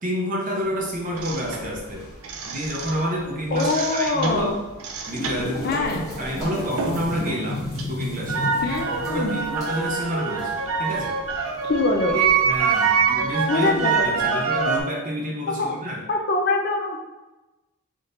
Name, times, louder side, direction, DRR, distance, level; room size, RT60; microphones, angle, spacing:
voice 1, 0.0-2.1 2.4-4.5 5.1-8.5 8.8-11.2 12.1-16.0, equal, 35° right, -1 dB, 0.7 m, -29 dB
sound 1, 0.9-14.2, left 1 dB, 15° left, 1.2 m, -37 dB
sound 2, 1.2-3.2 3.5-7.2 7.5-14.8, right 6 dB, 75° right, 0.5 m, -25 dB
voice 2, 3.5-4.6 5.6-6.1 8.6-9.4 11.6-12.2 13.5-14.3 15.6-15.7 16.1-17.0, left 3 dB, 45° left, 2 dB, 0.4 m, -24 dB
3.6 x 2.8 x 3.8 m, 1.1 s
head